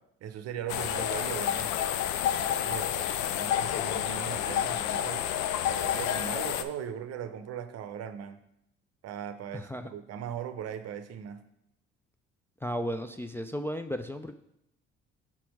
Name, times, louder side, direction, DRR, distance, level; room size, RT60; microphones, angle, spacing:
voice 1, 0.2-1.8 2.3-5.2 5.7-8.4 9.0-11.4, right 9 dB, 55° right, 10 dB, 0.7 m, -39 dB
sound 1, 0.7-6.6, left 10 dB, 70° left, 0.5 m, -29 dB
voice 2, 9.5-9.9 12.6-14.3, equal, 10° left, 6 dB, 0.3 m, -34 dB
5.8 x 4.3 x 4.6 m, 0.77 s
hypercardioid pair, 60°, 29 cm